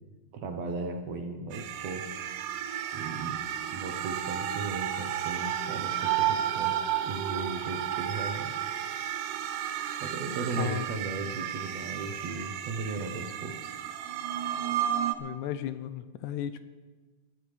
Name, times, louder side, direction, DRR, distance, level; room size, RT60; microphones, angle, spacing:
voice 1, 0.3-2.1 2.9-3.4 3.7-8.5 10.0-13.7, right 3 dB, 65° right, 5 dB, 2.0 m, -36 dB
sound 1, 1.5-15.2, right 10 dB, 90° right, 2.4 m, -32 dB
voice 2, 15.2-16.7, left 11 dB, 80° left, 12 dB, 1.8 m, -35 dB
20.5 x 14.0 x 3.3 m, 1.3 s
omnidirectional pair, 3.7 m